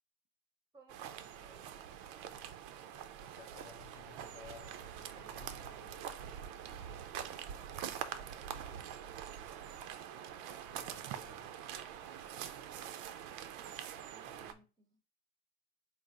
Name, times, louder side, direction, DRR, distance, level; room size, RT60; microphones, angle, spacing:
voice 1, 0.7-1.8 8.3-8.9 13.5-15.0, right 3 dB, 10° right, 0.8 m, -63 dB
sound 1, 0.9-14.5, right 9 dB, 50° right, 0.5 m, -45 dB
voice 2, 3.2-6.1 10.6-11.5 14.3-14.6, left 9 dB, 75° left, 0.7 m, -58 dB
4.0 x 2.1 x 4.1 m
hypercardioid pair, 80°, 38 cm